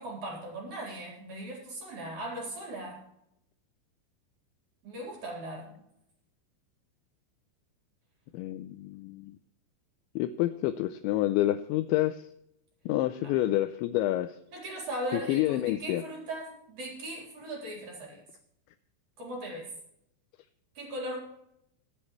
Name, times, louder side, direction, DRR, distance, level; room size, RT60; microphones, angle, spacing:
voice 1, 0.0-3.0 4.8-5.8 13.2-13.4 14.5-18.2 19.2-19.7 20.8-21.2, right 1 dB, 40° right, -2 dB, 4.8 m, -38 dB
voice 2, 8.3-9.4 10.2-12.2 12.9-14.4 15.1-16.0, left 14 dB, 85° left, 11 dB, 2.6 m, -28 dB
24.5 x 8.4 x 3.2 m, 0.79 s
omnidirectional pair, 5.7 m